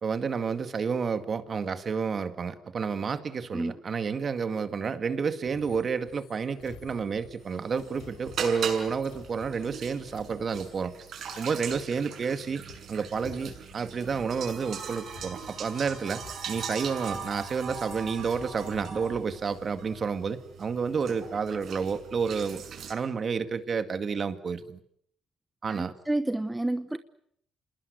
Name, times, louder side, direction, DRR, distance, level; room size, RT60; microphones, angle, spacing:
voice 1, 0.0-10.9 11.4-12.6 12.9-22.6 22.9-24.8 25.6-25.9, right 5 dB, 40° right, 2.0 m, -30 dB
sound 1, 5.4-12.4 12.7-19.2, left 6 dB, 90° left, 5.8 m, -51 dB
sound 2, 7.4-22.9, right 6 dB, 60° right, 6.4 m, -40 dB
voice 2, 25.7-27.0, right 1 dB, 10° right, 1.1 m, -30 dB
27.5 x 20.5 x 8.1 m
cardioid pair, 95°, 0 cm